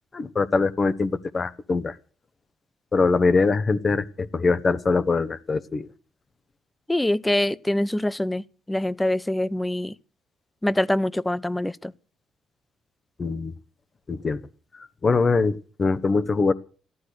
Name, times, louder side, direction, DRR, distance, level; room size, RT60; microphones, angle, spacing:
voice 1, 0.1-1.9 2.9-5.9 13.2-13.5 14.1-14.4 15.0-16.5, left 4 dB, 35° left, 1.2 m, -23 dB
voice 2, 6.9-9.9 10.6-11.9, left 1 dB, 10° left, 0.7 m, -24 dB
14.5 x 12.5 x 6.6 m
cardioid pair, 90°, 0 cm